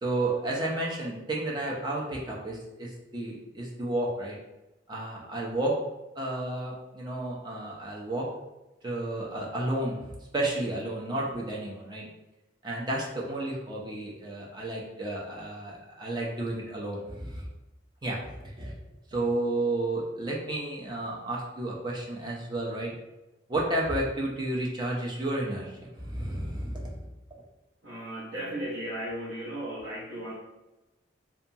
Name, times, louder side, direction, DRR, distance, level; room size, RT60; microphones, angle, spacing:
voice 1, 0.0-4.4 4.9-5.8 6.2-8.3 8.8-12.1 12.6-17.5 18.0-18.7 19.1-22.9 23.5-27.0, right 1 dB, 25° right, -3 dB, 0.5 m, -32 dB
voice 2, 27.8-30.3, right 1 dB, 75° right, -8 dB, 0.7 m, -35 dB
2.8 x 2.2 x 2.6 m, 1.0 s
head